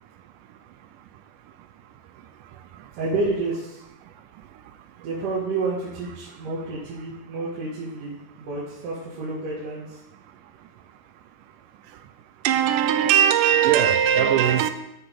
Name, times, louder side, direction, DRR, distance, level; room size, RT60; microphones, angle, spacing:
voice 1, 3.0-3.8 5.0-10.0, right 3 dB, 65° right, -7 dB, 3.3 m, -29 dB
voice 2, 12.4-14.7, right 9 dB, 80° right, 10 dB, 1.9 m, -19 dB
14.0 x 6.5 x 4.8 m, 0.89 s
omnidirectional pair, 4.3 m